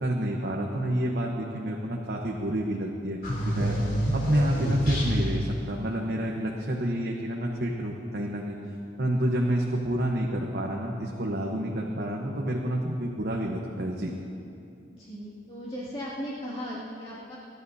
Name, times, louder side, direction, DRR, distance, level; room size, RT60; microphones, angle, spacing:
voice 1, 0.0-3.7 4.1-8.6 9.0-14.1, right 1 dB, 55° right, -2 dB, 1.1 m, -29 dB
sound 1, 3.2-5.6, equal, 55° left, 4.0 m, -28 dB
voice 2, 14.9-17.4, equal, 30° left, -9 dB, 2.4 m, -37 dB
26.5 x 12.0 x 2.8 m, 2.6 s
head